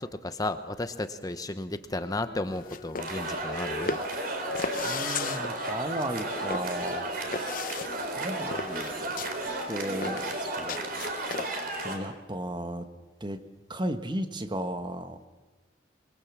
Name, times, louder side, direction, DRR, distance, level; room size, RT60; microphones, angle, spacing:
voice 1, 0.0-4.0 9.4-9.7, left 2 dB, 20° left, 9 dB, 0.9 m, -34 dB
Wind instrument woodwind instrument, 1.9-5.9 6.1-10.1, left 2 dB, 75° left, 4.7 m, -43 dB
sound 1, 2.5-11.8, left 5 dB, 50° left, 0.9 m, -37 dB
sound 2, 3.0-12.0, right 2 dB, 55° right, 4.0 m, -33 dB
voice 2, 4.8-7.1 7.3-7.8 8.1-9.1 9.7-11.0 11.8-12.8 13.2-13.4 13.7-15.3, right 1 dB, 25° right, 8 dB, 1.3 m, -35 dB
25.0 x 21.5 x 7.3 m, 1.2 s
head